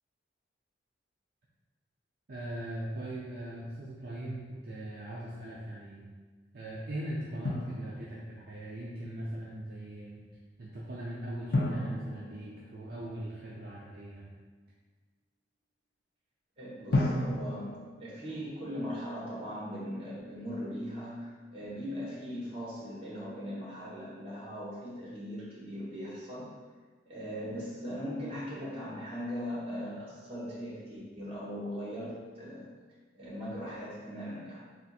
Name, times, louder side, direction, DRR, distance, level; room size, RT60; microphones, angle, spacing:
voice 1, 2.3-6.1 6.5-10.2 10.6-14.3, right 1 dB, 55° right, -6 dB, 0.5 m, -40 dB
Drum, 7.5-8.5 11.5-13.4 16.9-18.9, left 1 dB, 70° left, 0.6 m, -33 dB
voice 2, 16.6-26.6 27.0-32.7 33.1-34.6, equal, 30° right, -7 dB, 1.4 m, -39 dB
3.5 x 2.5 x 4.2 m, 1.4 s
head